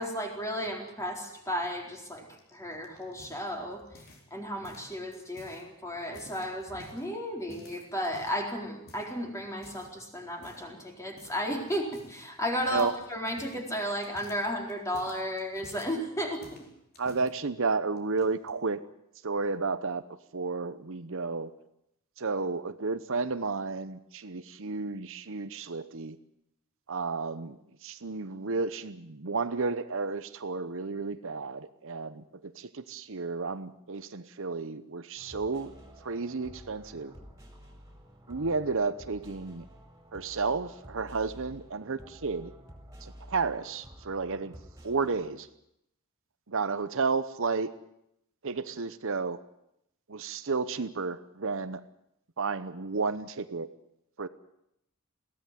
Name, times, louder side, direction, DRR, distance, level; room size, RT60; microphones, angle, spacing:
voice 1, 0.0-16.6, equal, 15° left, 1 dB, 4.3 m, -34 dB
sound 1, 2.4-4.3 4.6-5.6 6.0-7.1 7.5-8.5 8.9-9.1 9.6-9.9 10.4-10.7 11.2-11.4 11.7-12.3 12.6-16.0 16.4-17.3 18.0-18.5, left 1 dB, 45° left, 4.4 m, -52 dB
voice 2, 17.0-18.8 19.2-20.0 20.3-21.5 22.2-26.2 26.9-35.7 36.0-37.1 38.3-39.6 40.1-42.5 43.0-44.5 44.8-45.5 46.5-47.7 48.4-49.4 50.1-51.8 52.4-53.7 54.2-54.3, right 4 dB, 65° right, 12 dB, 0.9 m, -32 dB
sound 2, 35.2-45.3, equal, 15° right, 4.9 m, -51 dB
22.0 x 16.5 x 9.2 m, 0.80 s
head